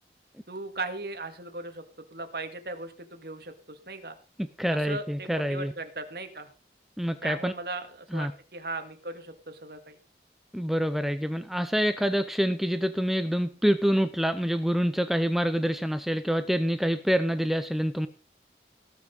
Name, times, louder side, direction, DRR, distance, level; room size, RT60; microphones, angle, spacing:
voice 1, 0.5-1.8 2.1-4.2 4.7-6.5 7.2-10.0, right 2 dB, 60° right, 7 dB, 2.0 m, -38 dB
voice 2, 4.4-5.7 7.0-7.5 8.1-8.3 10.5-18.1, equal, ahead, 10 dB, 0.6 m, -26 dB
18.0 x 6.1 x 5.4 m, 0.37 s
head